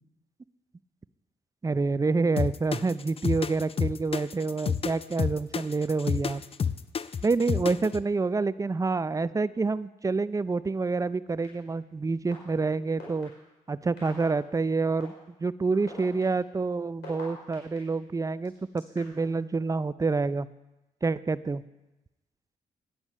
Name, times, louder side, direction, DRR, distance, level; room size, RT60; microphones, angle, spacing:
voice 1, 1.6-6.4 7.2-13.3 13.7-15.1 15.4-20.5 21.0-21.6, right 3 dB, 20° right, 16 dB, 0.4 m, -27 dB
sound 1, 2.4-8.0, left 6 dB, 35° left, 0.5 m, -29 dB
sound 2, 11.4-11.5 12.3-12.4 13.0-13.2 14.0-14.2 15.0-15.1 15.7-17.8 18.4-19.2, left 5 dB, 85° left, 4.5 m, -45 dB
10.0 x 9.4 x 5.4 m, 1.0 s
supercardioid pair, 55°, 17 cm